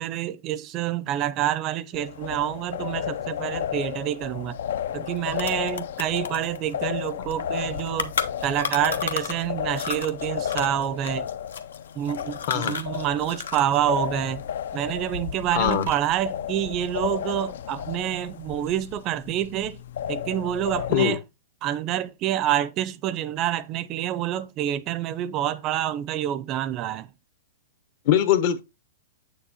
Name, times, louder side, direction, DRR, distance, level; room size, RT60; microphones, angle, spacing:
voice 1, 0.0-4.6 4.9-8.1 8.4-11.3 12.0-14.4 14.7-19.8 20.1-21.2 21.6-27.1, right 11 dB, 30° right, 0.5 m, -27 dB
sound 1, 1.9-21.0, left 9 dB, 70° left, 0.4 m, -33 dB
sound 2, 4.7-4.8 5.1-9.5 9.7-13.8 14.0-15.2 15.5-16.2, left 6 dB, 85° left, 0.9 m, -33 dB
voice 2, 15.5-15.9 20.9-21.2 28.0-28.6, left 10 dB, 50° left, 1.0 m, -21 dB
7.9 x 6.7 x 2.8 m
hypercardioid pair, 140°, 0 cm